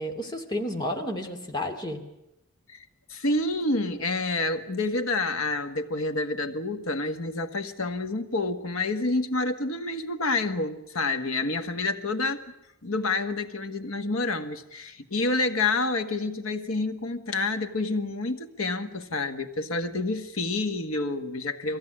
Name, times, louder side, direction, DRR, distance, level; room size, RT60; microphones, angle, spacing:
voice 1, 0.0-2.0, left 1 dB, 20° left, 3 dB, 2.6 m, -31 dB
voice 2, 3.1-12.4 12.8-21.8, left 2 dB, 80° left, 7 dB, 1.6 m, -28 dB
22.5 x 16.5 x 10.0 m, 0.86 s
head